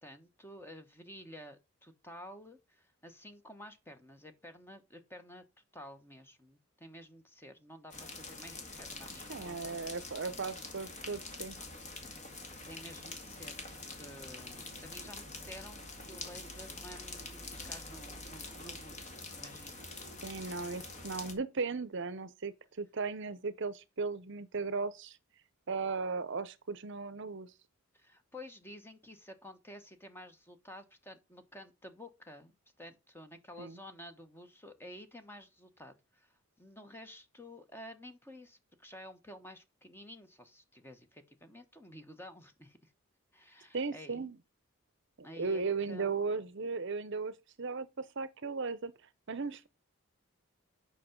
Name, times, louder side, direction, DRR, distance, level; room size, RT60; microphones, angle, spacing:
voice 1, 0.0-5.4 5.7-9.8 12.5-20.5 27.9-42.9 43.3-44.3 45.2-45.6 45.9-46.3, left 1 dB, 10° left, 1.2 m, -51 dB
sound 1, 7.9-21.3, left 3 dB, 35° left, 2.0 m, -45 dB
voice 2, 9.3-11.6 20.2-25.2 25.7-27.5 33.6-33.8 43.7-44.4 45.2-48.9 49.3-49.7, right 4 dB, 55° right, 0.7 m, -36 dB
8.4 x 5.7 x 5.3 m
head